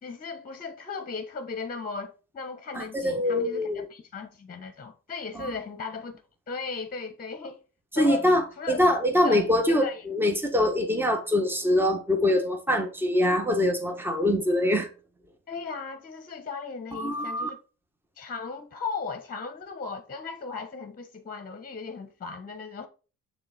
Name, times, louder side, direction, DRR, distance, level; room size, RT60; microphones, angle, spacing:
voice 1, 0.0-6.2 6.5-7.6 7.9-8.3 8.6-8.8 9.2-10.0 15.5-17.6 18.2-22.9, left 4 dB, 30° left, 1.1 m, -36 dB
voice 2, 2.7-3.9 5.3-5.5 7.9-14.9 16.9-17.5, left 1 dB, 5° right, 1.6 m, -24 dB
6.5 x 3.7 x 5.7 m
cardioid pair, 90°, 30 cm